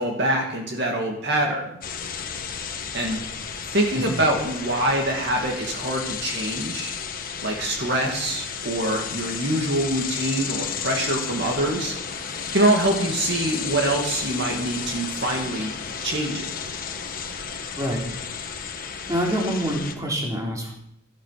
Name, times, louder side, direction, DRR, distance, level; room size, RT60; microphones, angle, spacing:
voice 1, 0.0-1.8 2.9-3.2 3.7-6.9 7.4-12.0 12.5-15.7 16.0-16.5, right 1 dB, 50° right, 1 dB, 2.3 m, -24 dB
sound 1, 1.8-19.9, left 6 dB, 40° left, 1.4 m, -33 dB
voice 2, 19.1-20.7, equal, 15° right, -2 dB, 3.6 m, -26 dB
17.0 x 12.0 x 5.9 m, 0.78 s
head